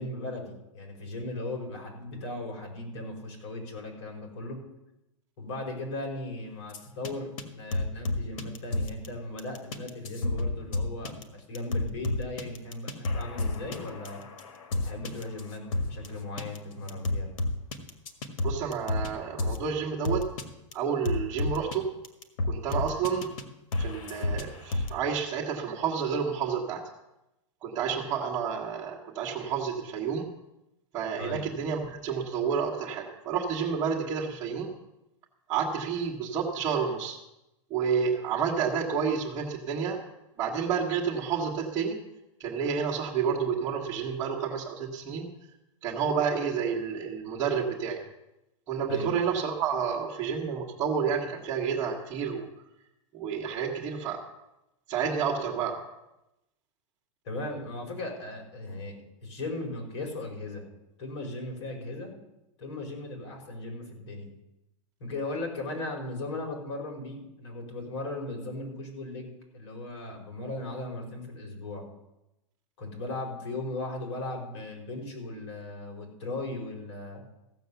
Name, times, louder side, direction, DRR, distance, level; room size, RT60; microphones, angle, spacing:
voice 1, 0.0-4.6 5.4-14.2 14.8-17.3 31.2-31.4 48.9-49.1 57.2-60.6 61.0-62.1 62.6-64.3 65.0-71.8 72.8-77.2, left 2 dB, 55° left, 0 dB, 4.9 m, -37 dB
sound 1, 6.7-7.1 7.4-7.5 7.7-9.1 9.4-16.1 16.4-16.6 16.9-19.1 19.4-19.6 20.0-20.4 20.7-20.8 21.0-21.8 22.0-23.4 23.7-24.9, left 2 dB, 85° left, 1.8 m, -30 dB
voice 2, 18.4-20.2 20.7-21.8 22.5-23.3 23.8-26.8 27.6-30.3 30.9-34.7 35.5-37.2 37.7-40.0 40.4-42.0 42.4-45.3 45.8-48.0 48.7-52.4 53.1-54.2 54.9-55.8, right 6 dB, 15° right, -6 dB, 1.5 m, -30 dB
15.0 x 7.5 x 7.0 m, 0.92 s
supercardioid pair, 170°, 17 cm